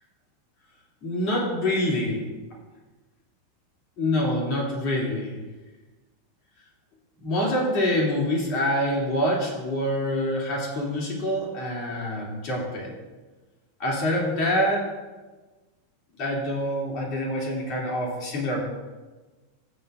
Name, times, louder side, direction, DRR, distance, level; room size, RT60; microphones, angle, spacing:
voice 1, 1.0-2.2 4.0-5.4 7.2-12.9 13.8-14.9 16.2-18.6, left 1 dB, 35° left, -3 dB, 2.8 m, -26 dB
16.0 x 7.4 x 2.6 m, 1.2 s
supercardioid pair, 175°, 0 cm